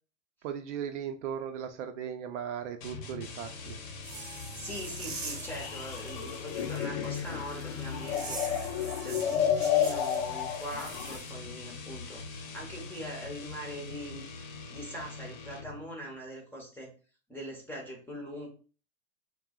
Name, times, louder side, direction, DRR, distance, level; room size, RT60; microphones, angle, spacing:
voice 1, 0.4-3.8, right 8 dB, 60° right, 7 dB, 0.5 m, -37 dB
sound 1, 2.8-15.9, left 4 dB, 70° left, 0.8 m, -43 dB
sound 2, 4.0-11.3, right 4 dB, 25° right, 0.8 m, -44 dB
voice 2, 4.6-8.4 9.0-12.2 12.5-14.3 14.7-16.9 17.3-18.5, equal, 5° left, -1 dB, 0.6 m, -42 dB
sound 3, 5.5-11.2, left 9 dB, 55° left, 0.5 m, -31 dB
2.3 x 2.1 x 3.6 m, 0.37 s
hypercardioid pair, 120°, 41 cm